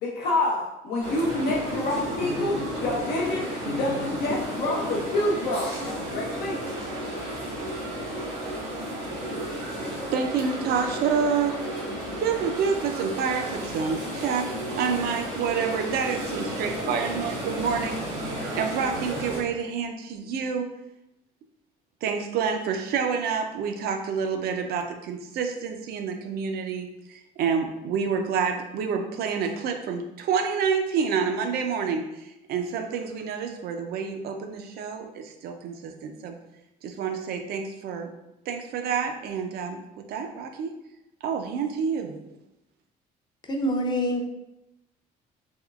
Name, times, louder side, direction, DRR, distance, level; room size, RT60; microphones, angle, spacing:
voice 1, 0.0-6.6, left 1 dB, 70° left, -3 dB, 0.6 m, -28 dB
sound 1, 1.0-19.4, equal, 90° right, 1.3 m, -32 dB
voice 2, 10.1-11.6 12.2-14.5 14.8-18.0 18.5-20.7 22.0-36.3 36.8-38.1 38.5-39.8 40.1-40.7 41.2-42.2, right 6 dB, 70° right, 5 dB, 0.5 m, -28 dB
voice 3, 43.5-44.2, equal, 25° left, 2 dB, 0.5 m, -25 dB
3.5 x 3.0 x 2.3 m, 0.90 s
cardioid pair, 110°, 17 cm